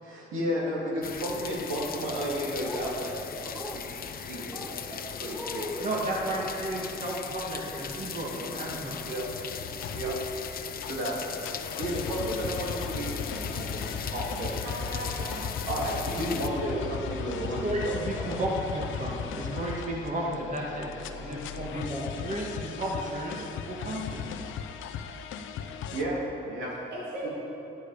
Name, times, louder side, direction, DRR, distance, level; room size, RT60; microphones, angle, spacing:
voice 1, 0.0-5.9 9.0-9.3 9.9-10.2 10.8-11.2 11.6-14.5 15.6-18.4 25.9-26.8 27.2-27.3, equal, 85° right, -4 dB, 2.9 m, -33 dB
sound 1, 1.0-16.5, left 7 dB, 50° left, 0.7 m, -38 dB
sound 2, 2.6-2.9 3.5-3.8 4.5-4.8 5.3-5.7 6.3-6.5 8.5-8.7 9.6-9.8 11.1-11.3 12.1-12.2, left 1 dB, 5° right, 1.1 m, -41 dB
voice 2, 5.8-9.0 17.4-20.9 21.2-24.3, right 1 dB, 40° right, -3 dB, 2.3 m, -33 dB
sound 3, 9.3-26.0, left 6 dB, 85° left, 0.7 m, -37 dB
voice 3, 14.6-15.4 15.7-16.2 16.4-16.5 26.9-27.3, right 1 dB, 60° right, -4 dB, 2.3 m, -38 dB
13.0 x 10.0 x 5.0 m, 2.8 s
cardioid pair, 90°, 20 cm